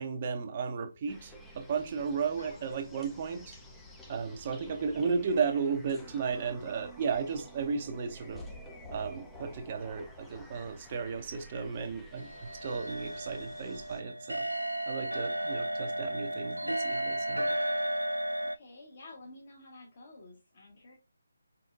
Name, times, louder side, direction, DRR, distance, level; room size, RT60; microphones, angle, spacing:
voice 1, 0.0-3.6 4.1-8.4 8.9-14.4 14.9-17.5, right 5 dB, 30° right, 0.7 m, -34 dB
sound 1, 1.1-14.0, equal, 5° left, 0.5 m, -50 dB
voice 2, 2.4-3.5 4.7-5.1 15.2-15.9 18.4-21.0, left 2 dB, 35° left, 1.0 m, -53 dB
sound 2, 12.2-18.6, right 1 dB, 85° right, 0.3 m, -33 dB
4.3 x 4.0 x 2.3 m
figure-of-eight pair, 150°, 0 cm